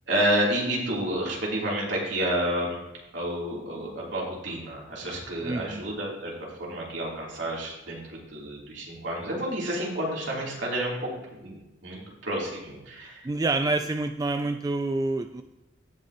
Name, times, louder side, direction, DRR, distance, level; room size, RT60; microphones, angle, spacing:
voice 1, 0.1-2.8 3.1-6.3 6.6-8.0 8.3-13.3, right 1 dB, 65° right, -4 dB, 3.3 m, -30 dB
voice 2, 5.4-5.8 13.2-15.4, right 2 dB, 20° right, 8 dB, 0.3 m, -27 dB
16.5 x 5.9 x 3.0 m, 0.95 s
head